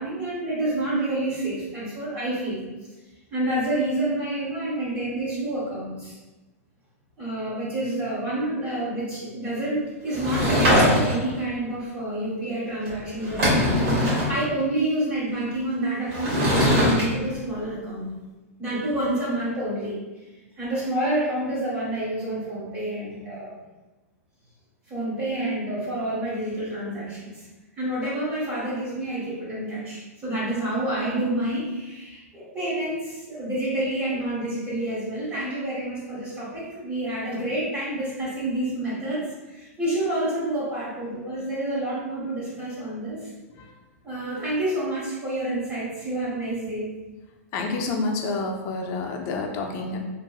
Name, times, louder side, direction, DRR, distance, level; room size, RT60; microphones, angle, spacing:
voice 1, 0.0-2.6 3.3-6.1 7.2-18.1 18.6-20.0 20.6-23.6 24.9-27.4 27.8-43.3 44.0-46.9, right 1 dB, 25° right, -9 dB, 1.2 m, -28 dB
Sliding door / Wood, 10.1-11.4 12.9-13.0 13.2-14.3 16.1-17.0, equal, 55° right, 1.5 m, -21 dB
voice 2, 47.5-50.0, left 3 dB, 40° left, 2 dB, 0.5 m, -28 dB
2.9 x 2.5 x 2.3 m, 1.1 s
hypercardioid pair, 120°, 8 cm